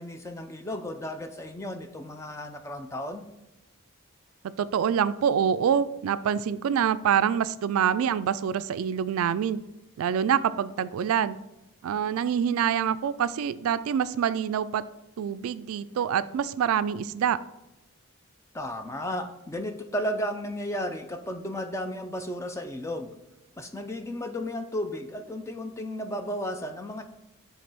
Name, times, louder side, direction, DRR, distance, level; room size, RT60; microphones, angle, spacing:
voice 1, 0.0-3.3 18.5-23.1 23.6-27.0, equal, 15° left, 7 dB, 0.4 m, -34 dB
voice 2, 4.4-9.6 10.0-11.4 11.8-14.8 15.2-17.4, right 8 dB, 85° right, 16 dB, 0.3 m, -26 dB
5.2 x 3.8 x 5.9 m, 0.93 s
head